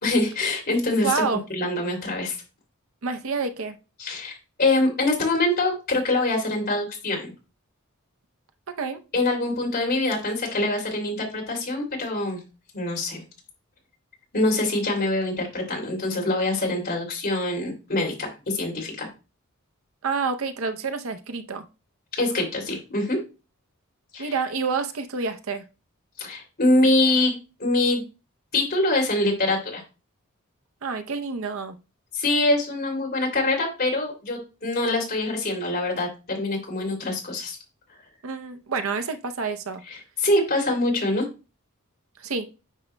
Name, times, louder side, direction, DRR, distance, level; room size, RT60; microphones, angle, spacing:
voice 1, 0.0-1.2 1.5-2.4 4.0-4.3 4.6-7.3 9.1-12.4 12.7-13.2 14.3-19.1 22.2-23.2 24.1-24.3 26.2-27.3 27.6-28.0 28.5-29.8 32.1-37.6 40.2-41.3, left 2 dB, 45° left, 2.8 m, -24 dB
voice 2, 1.0-1.4 3.0-3.8 8.7-9.0 20.0-21.7 24.2-25.6 30.8-31.8 38.2-39.8 42.2-42.5, right 5 dB, 70° right, 0.7 m, -28 dB
9.8 x 5.5 x 2.2 m
head